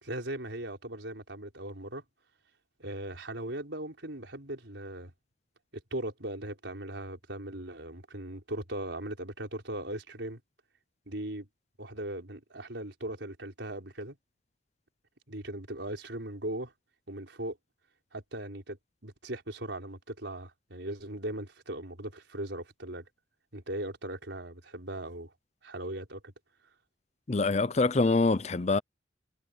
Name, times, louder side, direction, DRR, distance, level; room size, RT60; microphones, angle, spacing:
voice 1, 0.0-2.0 2.8-5.1 5.9-10.4 11.1-11.5 11.8-14.2 15.3-16.7 17.1-17.6 18.1-18.8 19.0-23.0 23.5-25.3 25.6-26.3, right 1 dB, 75° right, 4.7 m, -38 dB
voice 2, 27.3-28.8, left 3 dB, 35° left, 0.6 m, -25 dB
head